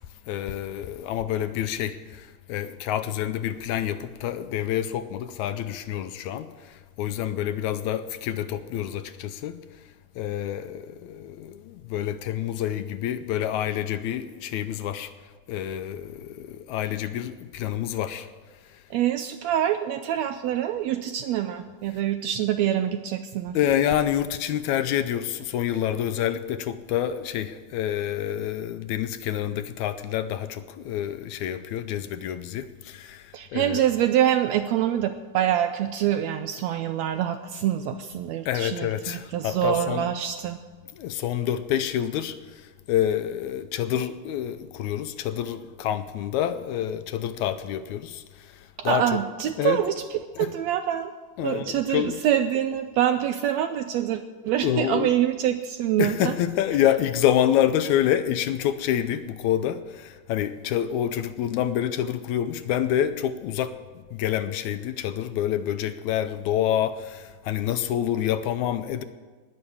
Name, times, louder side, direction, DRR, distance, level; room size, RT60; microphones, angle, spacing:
voice 1, 0.3-9.6 10.2-15.1 15.5-18.3 23.5-33.8 38.5-40.0 41.0-49.1 49.6-49.8 50.4-50.5 51.4-52.2 54.6-55.1 56.0-69.0, left 10 dB, 80° left, 11 dB, 1.9 m, -27 dB
voice 2, 18.9-23.6 33.3-40.6 48.8-49.9 50.4-51.1 51.4-56.3, right 11 dB, 85° right, 9 dB, 1.6 m, -25 dB
19.0 x 6.4 x 8.5 m, 1.4 s
omnidirectional pair, 3.6 m